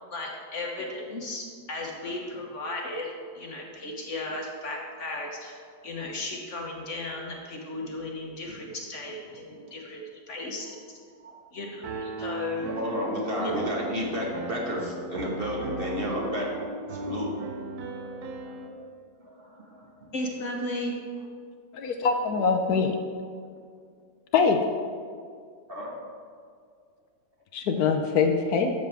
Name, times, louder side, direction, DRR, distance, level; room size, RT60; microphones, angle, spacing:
voice 1, 0.1-5.6 5.8-11.0 11.5-12.7 13.4-13.9 20.1-21.0, left 2 dB, 50° left, 0 dB, 1.3 m, -35 dB
voice 2, 11.2-11.6 12.6-17.3 17.9-18.8 19.2-20.1 25.7-25.9, equal, 35° right, -3 dB, 1.6 m, -33 dB
Piano, 11.8-18.7, right 2 dB, 75° right, 1.2 m, -37 dB
voice 3, 21.7-22.9 24.3-24.6 27.5-28.7, left 5 dB, 70° left, 5 dB, 1.1 m, -23 dB
13.0 x 6.7 x 3.5 m, 2.1 s
omnidirectional pair, 1.7 m